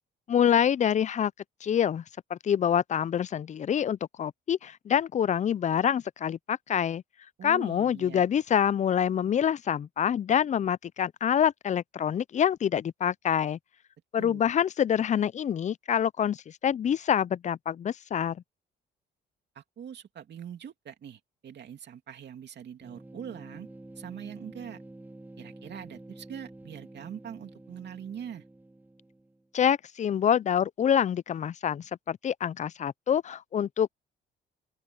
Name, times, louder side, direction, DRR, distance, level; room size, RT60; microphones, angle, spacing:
voice 1, 0.3-1.3 1.6-2.0 2.3-7.0 7.4-13.6 14.1-18.4 29.5-33.9, left 9 dB, 35° left, 0.4 m, -26 dB
voice 2, 7.4-8.2 14.2-14.5 19.5-23.7 24.0-24.8 25.4-28.4, right 8 dB, 60° right, 2.9 m, -43 dB
sound 1, 22.8-29.4, right 1 dB, 10° right, 1.2 m, -49 dB
open air
cardioid pair, 90°, 20 cm